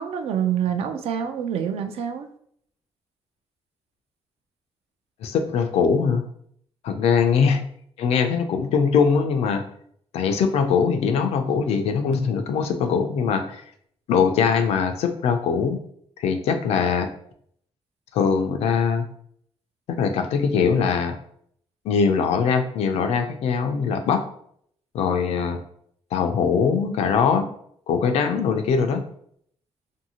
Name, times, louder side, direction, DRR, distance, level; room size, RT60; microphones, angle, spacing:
voice 1, 0.0-2.3, right 8 dB, 75° right, 7 dB, 0.4 m, -26 dB
voice 2, 5.2-6.3 6.8-7.6 8.0-9.6 10.1-13.6 14.1-15.8 16.2-17.1 18.1-19.0 20.0-21.1 21.8-24.2 24.9-25.6 26.1-27.5 27.9-29.0, left 6 dB, 85° left, 7 dB, 0.4 m, -21 dB
2.6 x 2.6 x 2.8 m, 0.65 s
cardioid pair, 120°, 10 cm